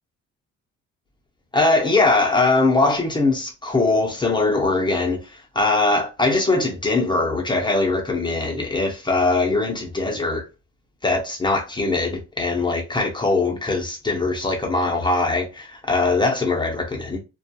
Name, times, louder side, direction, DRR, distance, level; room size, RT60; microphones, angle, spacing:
voice 1, 1.5-10.4 11.0-17.2, left 3 dB, 15° left, 0.7 m, -21 dB
2.4 x 2.3 x 2.8 m
cardioid pair, 90°, 30 cm